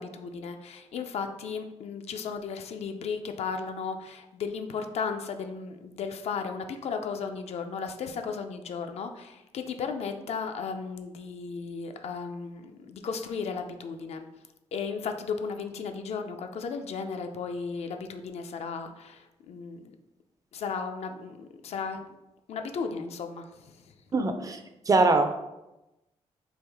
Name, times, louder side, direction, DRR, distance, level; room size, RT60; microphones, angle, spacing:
voice 1, 0.0-14.3 14.7-19.9 20.5-22.0 22.5-23.8, left 5 dB, 65° left, 6 dB, 0.4 m, -35 dB
voice 2, 24.1-24.6 24.9-25.4, right 3 dB, 30° right, 7 dB, 0.4 m, -22 dB
3.4 x 2.4 x 3.4 m, 0.96 s
cardioid pair, 85°, 12 cm